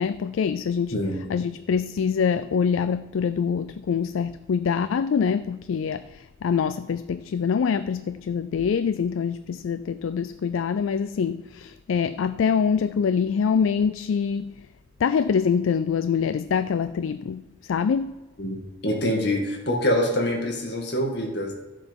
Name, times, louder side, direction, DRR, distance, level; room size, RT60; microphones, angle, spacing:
voice 1, 0.0-1.0 1.3-14.5 15.0-18.2, left 6 dB, 85° left, 0.3 m, -25 dB
voice 2, 0.9-1.3 18.4-21.5, left 1 dB, 55° left, 2.0 m, -25 dB
13.0 x 7.4 x 5.3 m
head